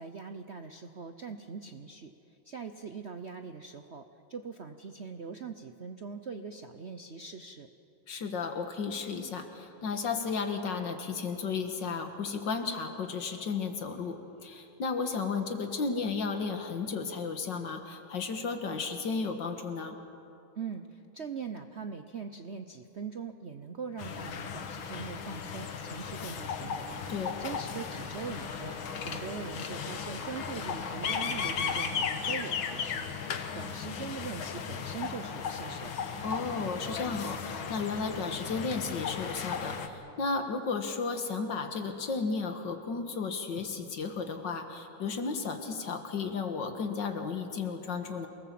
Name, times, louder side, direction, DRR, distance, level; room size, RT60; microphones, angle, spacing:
voice 1, 0.0-2.1 2.4-7.7 20.6-26.9 27.4-33.1 33.3-36.1, right 5 dB, 55° right, 7 dB, 0.8 m, -42 dB
voice 2, 8.1-20.0 27.1-27.4 36.2-48.3, left 4 dB, 65° left, 6 dB, 2.2 m, -34 dB
sound 1, 24.0-39.9, left 6 dB, 80° left, 2.1 m, -36 dB
sound 2, 25.6-31.8, right 1 dB, 10° right, 0.7 m, -48 dB
27.5 x 19.5 x 7.6 m, 2.9 s
omnidirectional pair, 2.2 m